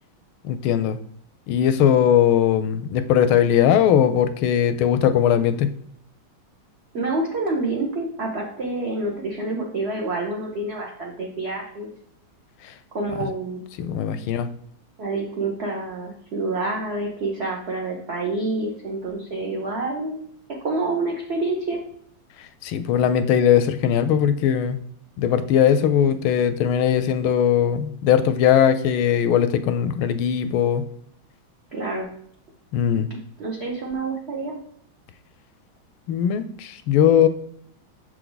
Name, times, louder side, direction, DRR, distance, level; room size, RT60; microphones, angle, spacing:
voice 1, 0.4-1.0 1.5-5.7 12.6-12.7 13.8-14.5 22.6-24.8 25.2-30.8 32.7-33.1 36.1-37.3, left 9 dB, 85° left, 11 dB, 1.4 m, -19 dB
voice 2, 6.9-11.9 12.9-13.6 15.0-20.2 20.6-21.8 31.7-32.1 33.4-34.6, right 2 dB, 50° right, -1 dB, 0.7 m, -27 dB
6.5 x 4.6 x 3.9 m, 0.65 s
omnidirectional pair, 2.2 m